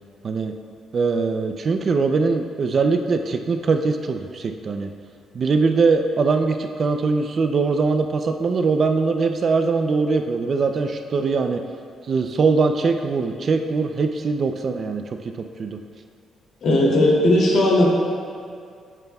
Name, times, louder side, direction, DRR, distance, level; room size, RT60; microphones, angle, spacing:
voice 1, 0.9-4.9 5.3-11.6 12.1-15.0 15.6-15.8, right 4 dB, 40° right, 6 dB, 0.5 m, -21 dB
voice 2, 16.6-17.8, left 1 dB, 55° left, -3 dB, 2.6 m, -17 dB
15.5 x 9.0 x 2.3 m, 2.3 s
cardioid pair, 160°, 0 cm